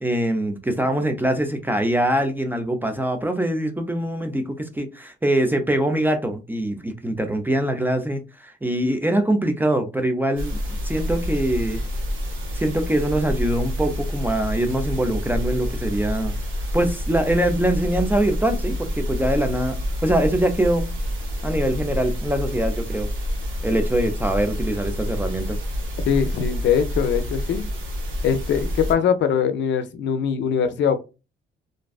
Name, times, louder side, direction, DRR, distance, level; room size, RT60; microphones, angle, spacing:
voice 1, 0.0-10.6 10.8-11.8 12.5-16.4 16.7-20.9 21.4-23.1 23.6-25.6, right 1 dB, 10° right, 0.4 m, -23 dB
sound 1, 10.4-28.9, equal, 80° right, 1.1 m, -28 dB
voice 2, 26.1-27.6 28.2-31.0, left 7 dB, 65° left, 0.5 m, -22 dB
2.5 x 2.2 x 2.3 m
cardioid pair, 90°, 20 cm